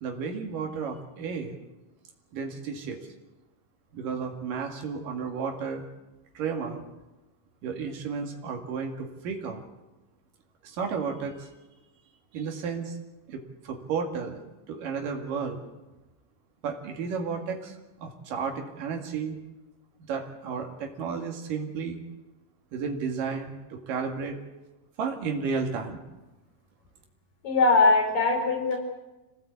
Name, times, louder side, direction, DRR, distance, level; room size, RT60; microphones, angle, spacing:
voice 1, 0.0-1.6 2.3-3.0 3.9-5.9 6.4-6.8 7.6-9.6 10.6-11.5 12.3-13.0 13.3-15.6 16.6-19.4 20.1-22.0 22.7-24.4 25.0-26.0, right 5 dB, 85° right, 2 dB, 3.7 m, -33 dB
voice 2, 27.4-28.8, left 3 dB, 90° left, 1 dB, 6.5 m, -21 dB
26.5 x 18.0 x 8.4 m, 1.1 s
omnidirectional pair, 3.7 m